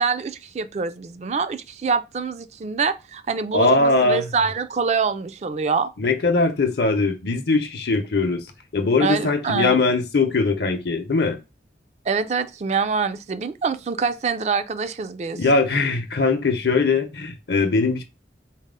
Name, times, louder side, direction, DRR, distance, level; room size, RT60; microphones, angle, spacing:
voice 1, 0.0-5.9 9.0-9.8 12.1-15.4, right 5 dB, 40° right, 0.3 m, -25 dB
voice 2, 3.5-4.3 6.0-8.5 8.7-11.4 15.3-18.0, left 3 dB, 65° left, 0.6 m, -21 dB
4.1 x 2.0 x 3.7 m
head